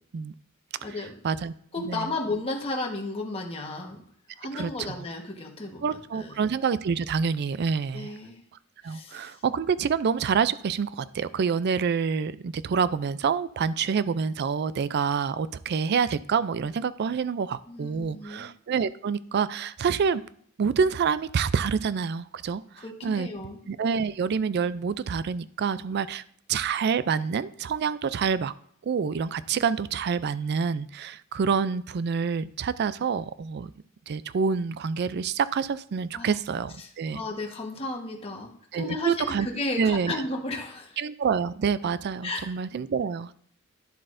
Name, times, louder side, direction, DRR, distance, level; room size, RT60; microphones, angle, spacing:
voice 1, 0.8-1.1 1.7-4.0 4.4-6.5 7.9-8.4 8.8-9.4 17.7-18.5 22.8-23.6 36.1-36.3 36.8-41.0 42.2-42.5, left 2 dB, 25° left, 0 dB, 1.3 m, -34 dB
voice 2, 4.5-4.9 5.8-8.1 8.8-20.2 20.6-23.3 23.7-26.2 26.5-28.5 28.8-33.7 34.1-37.2 38.7-39.5 39.8-40.2 41.0-43.3, right 6 dB, 50° right, 16 dB, 0.3 m, -27 dB
11.0 x 7.6 x 2.6 m, 0.63 s
head